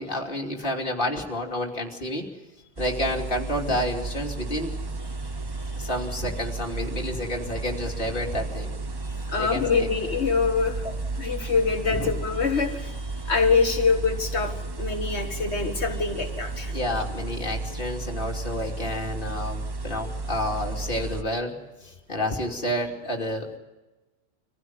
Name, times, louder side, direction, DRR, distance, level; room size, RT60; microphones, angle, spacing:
voice 1, 0.0-2.3 2.8-4.7 5.7-8.7 9.4-9.9 10.8-11.0 11.9-12.1 16.7-21.5 21.8-23.6, left 1 dB, 45° left, 1 dB, 3.0 m, -30 dB
sound 1, 2.8-21.2, right 3 dB, 25° right, 0.6 m, -33 dB
voice 2, 9.2-10.9 11.2-16.7, left 5 dB, 60° left, 6 dB, 1.8 m, -25 dB
25.0 x 15.5 x 9.3 m, 1.1 s
omnidirectional pair, 1.3 m